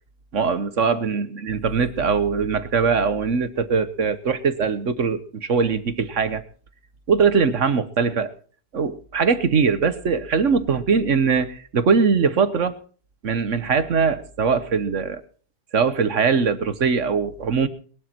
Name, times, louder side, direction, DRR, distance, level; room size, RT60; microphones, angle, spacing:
voice 1, 0.3-6.4 7.1-8.3 8.7-12.7 13.2-15.2 15.7-17.7, right 5 dB, 50° right, 12 dB, 1.3 m, -21 dB
20.5 x 11.5 x 4.5 m, 0.44 s
omnidirectional pair, 1.8 m